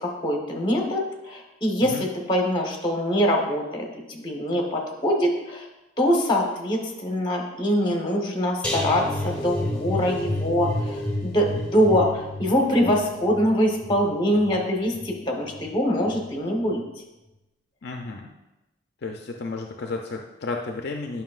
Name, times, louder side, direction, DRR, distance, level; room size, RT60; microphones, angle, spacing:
voice 1, 0.0-5.7 6.0-16.8, equal, 25° left, 1 dB, 1.0 m, -24 dB
sound 1, 8.6-15.7 16.1-16.4 16.7-16.8, left 1 dB, 5° left, 1.4 m, -31 dB
voice 2, 17.8-18.3 19.0-21.2, left 3 dB, 55° left, 2 dB, 0.4 m, -32 dB
9.3 x 5.6 x 2.4 m, 1.0 s
head